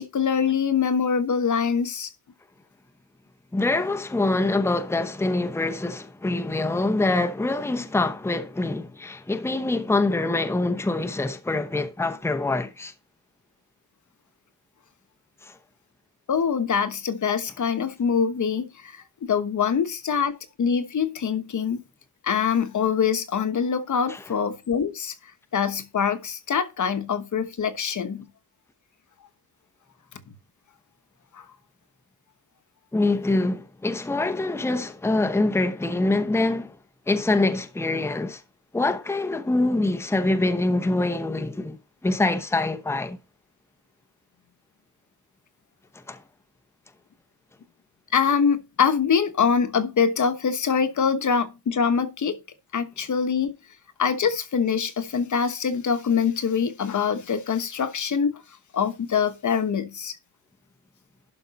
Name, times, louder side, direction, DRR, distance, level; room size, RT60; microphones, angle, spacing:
voice 1, 0.0-2.1 16.3-21.8 22.2-25.1 25.5-28.3 31.3-31.4 48.1-52.4 52.7-53.5 54.0-58.3 58.7-60.2, left 6 dB, 50° left, 1.2 m, -24 dB
voice 2, 3.5-12.9 15.4-15.6 24.1-24.2 32.9-36.8 37.1-38.4 38.7-43.2 45.9-46.2, left 2 dB, 5° left, 0.8 m, -25 dB
11.5 x 5.3 x 4.1 m
wide cardioid pair, 145°, 38 cm